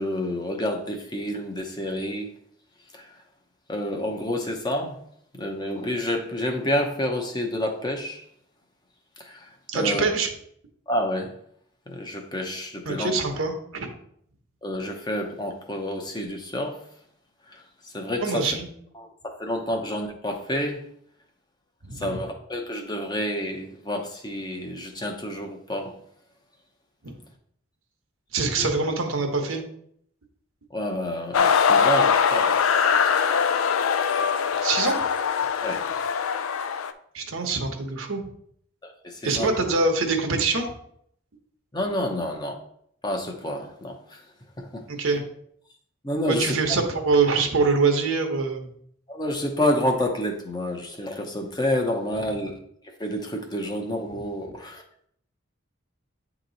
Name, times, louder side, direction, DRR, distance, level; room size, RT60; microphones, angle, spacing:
voice 1, 0.0-2.3 2.9-3.1 3.7-5.0 5.3-8.2 9.2-10.1 10.9-11.3 11.9-13.2 14.6-16.8 17.5-17.6 17.9-18.5 19.0-20.8 21.9-26.0 28.6-28.7 30.7-32.5 35.6-35.8 38.8-39.5 41.7-42.5 43.0-44.2 44.6-44.8 46.0-46.6 49.1-52.5 53.0-54.8, left 1 dB, 20° left, 3 dB, 0.7 m, -29 dB
voice 2, 9.7-10.3 12.9-13.9 18.2-18.7 21.8-22.2 27.0-27.1 28.3-29.6 34.6-35.0 37.1-38.2 39.2-40.7 44.9-45.2 46.3-48.7 54.1-54.2, right 4 dB, 80° right, 3 dB, 1.0 m, -24 dB
sound 1, 31.3-36.9, left 6 dB, 85° left, 0.4 m, -22 dB
8.6 x 3.0 x 3.9 m, 0.68 s
head